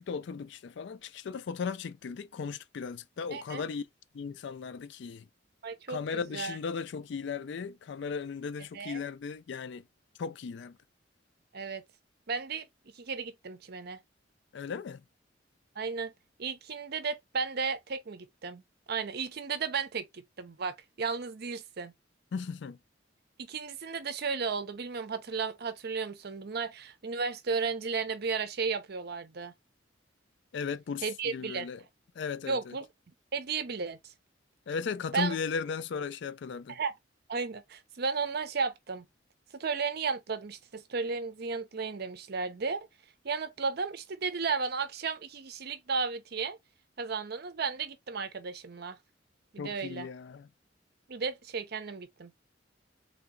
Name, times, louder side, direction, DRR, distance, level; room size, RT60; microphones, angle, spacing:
voice 1, 0.0-3.9 4.1-5.2 5.9-9.8 10.2-10.8 14.5-15.0 22.3-22.8 30.5-31.8 32.2-32.7 34.7-36.8 49.6-50.5, left 5 dB, 65° left, 0.4 m, -36 dB
voice 2, 3.3-3.7 5.6-6.6 8.7-9.0 11.5-11.8 12.3-12.7 13.0-14.0 15.8-16.1 16.4-18.6 18.9-21.9 23.4-29.5 31.0-31.7 32.5-32.9 33.3-34.0 35.1-35.4 36.7-36.9 37.3-39.1 39.6-42.9 43.2-46.6 47.0-49.0 49.5-50.1 51.1-52.3, right 5 dB, 55° right, 0.6 m, -34 dB
3.4 x 2.9 x 3.7 m
head